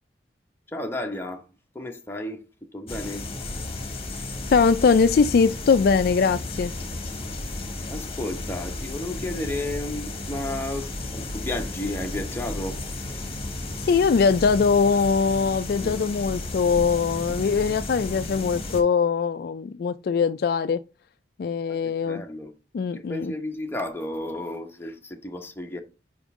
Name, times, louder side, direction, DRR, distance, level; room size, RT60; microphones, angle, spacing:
voice 1, 0.7-1.4 1.7-2.4 2.7-3.2 7.9-12.8 21.7-22.5 22.9-25.8, left 1 dB, 15° left, 0.9 m, -33 dB
sound 1, 2.9-18.8, left 2 dB, 35° left, 1.3 m, -33 dB
voice 2, 4.5-6.7 13.8-20.8 21.4-22.2 22.7-23.3, left 5 dB, 60° left, 0.3 m, -21 dB
5.2 x 5.0 x 3.6 m
head